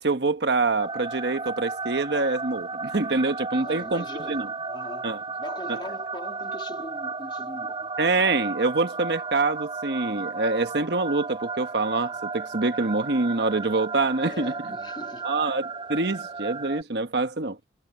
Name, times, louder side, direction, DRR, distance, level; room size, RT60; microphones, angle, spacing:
voice 1, 0.0-4.5 5.0-5.2 5.7-5.8 8.0-14.5 15.2-17.6, right 3 dB, 65° right, 1.2 m, -25 dB
sound 1, 0.8-16.8, right 4 dB, 30° right, 3.7 m, -34 dB
voice 2, 3.5-7.9 14.2-15.3, left 1 dB, 30° left, 2.9 m, -41 dB
head